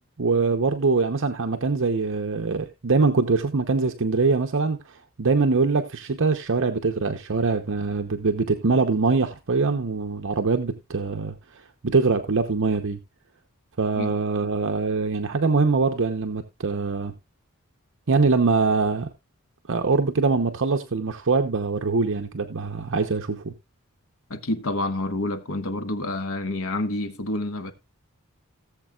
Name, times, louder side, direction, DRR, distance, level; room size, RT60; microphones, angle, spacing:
voice 1, 0.0-13.0 13.8-17.1 18.1-19.1 19.7-23.5, right 4 dB, 60° right, 0.8 m, -23 dB
voice 2, 24.3-27.7, left 2 dB, 70° left, 1.4 m, -28 dB
18.0 x 7.4 x 2.4 m
head